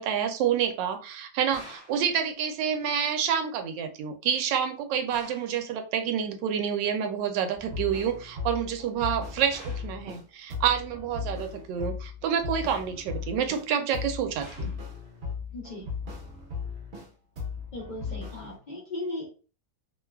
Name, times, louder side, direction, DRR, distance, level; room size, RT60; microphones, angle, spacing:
voice 1, 0.0-14.7, right 8 dB, 80° right, 6 dB, 1.2 m, -28 dB
sound 1, 1.5-2.1 5.1-5.6 9.5-10.0 14.4-14.9, equal, 25° left, 0.7 m, -48 dB
sound 2, 7.5-10.2 10.5-13.7 13.9-17.1 17.4-18.6, left 5 dB, 50° right, 0.8 m, -37 dB
voice 2, 15.5-15.9 17.7-19.4, left 2 dB, 55° left, -5 dB, 0.5 m, -37 dB
3.1 x 2.2 x 2.2 m, 0.35 s
omnidirectional pair, 2.0 m